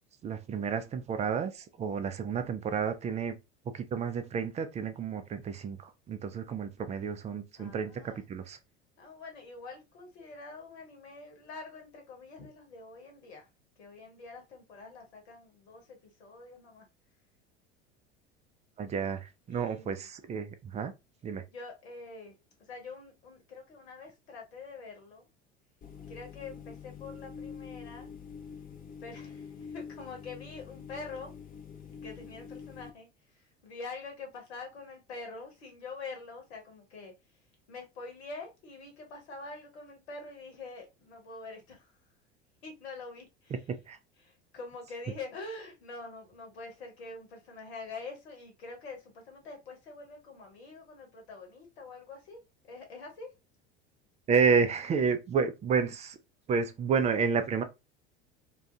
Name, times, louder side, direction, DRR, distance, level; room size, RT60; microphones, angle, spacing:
voice 1, 0.2-3.4 3.7-5.8 6.1-7.9 8.3-8.6 18.8-20.9 21.2-21.4 43.5-43.6 43.9-44.0 54.3-56.2 56.5-57.6, right 5 dB, 20° right, 0.4 m, -30 dB
voice 2, 7.6-8.2 9.0-13.5 13.8-16.9 19.5-20.1 21.5-22.3 22.7-25.3 26.1-28.1 29.0-31.3 32.0-33.1 33.3-37.1 37.7-41.9 42.6-43.6 44.2-53.3, left 3 dB, 75° left, 1.0 m, -45 dB
sound 1, 25.8-32.9, left 6 dB, 25° left, 0.6 m, -46 dB
2.3 x 2.3 x 2.6 m
hypercardioid pair, 75°, 33 cm